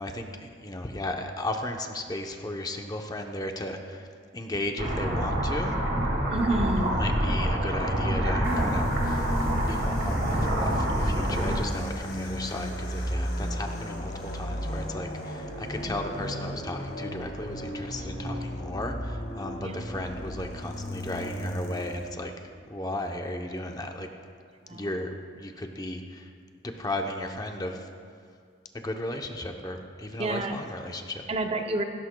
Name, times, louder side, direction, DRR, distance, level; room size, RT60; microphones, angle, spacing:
voice 1, 0.0-4.1 4.3-5.8 6.9-9.3 9.6-22.3 22.7-24.1 24.7-25.1 25.4-26.3 26.8-27.9 28.7-31.2, left 1 dB, 20° left, 3 dB, 0.7 m, -35 dB
sound 1, 4.8-11.6, equal, 60° right, 2.1 m, -26 dB
voice 2, 6.3-7.0 15.8-16.0 19.6-19.8 24.7-24.9 30.2-30.6 31.3-31.8, right 2 dB, 30° right, 5 dB, 0.6 m, -29 dB
sound 2, 8.4-22.1, equal, 50° left, 1.9 m, -35 dB
16.5 x 16.5 x 2.2 m, 2.2 s
head